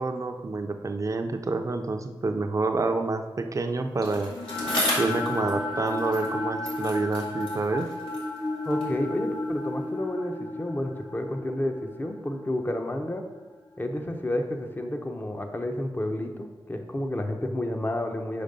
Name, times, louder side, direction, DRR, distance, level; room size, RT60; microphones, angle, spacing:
voice 1, 0.0-4.3 5.0-7.9, right 3 dB, 35° right, 5 dB, 0.6 m, -28 dB
sound 1, 3.9-14.1, left 2 dB, 60° left, 2.2 m, -34 dB
Bicycle, 4.0-6.4 6.6-9.0 9.8-9.9, left 1 dB, 75° left, 2.1 m, -34 dB
voice 2, 8.6-13.2 13.8-18.4, left 1 dB, 25° left, 5 dB, 0.8 m, -30 dB
5.1 x 5.0 x 5.3 m, 1.2 s
wide cardioid pair, 70°, 9 cm